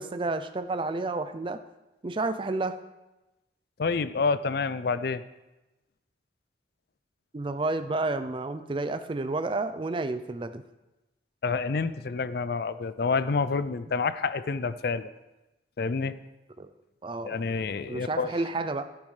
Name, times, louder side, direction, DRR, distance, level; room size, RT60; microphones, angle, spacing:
voice 1, 0.0-1.6 2.0-2.8 7.3-10.6 16.6-16.7 17.0-17.4 17.8-18.9, right 2 dB, 30° right, 11 dB, 0.4 m, -30 dB
voice 2, 3.8-5.2 11.4-15.1 15.8-16.1 17.2-18.3, left 4 dB, 55° left, 14 dB, 0.4 m, -28 dB
13.0 x 10.5 x 3.3 m, 1.0 s
head